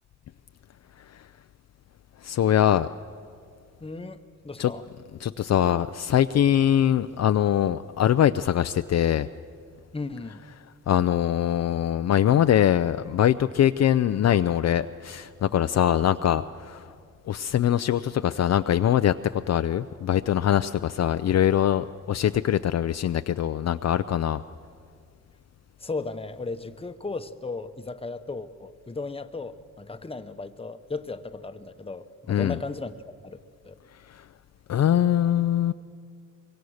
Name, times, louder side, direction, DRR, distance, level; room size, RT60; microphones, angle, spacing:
voice 1, 2.2-2.9 4.6-4.7 5.2-9.3 10.9-16.9 17.3-24.4 32.3-32.6 34.1-34.2 34.7-35.7, left 10 dB, 55° left, 10 dB, 0.5 m, -23 dB
voice 2, 3.8-4.8 9.9-10.4 25.8-32.9 33.2-33.4 33.6-33.8, left 3 dB, 20° left, 9 dB, 1.0 m, -35 dB
24.5 x 22.5 x 6.5 m, 2.2 s
cardioid pair, 100°, 31 cm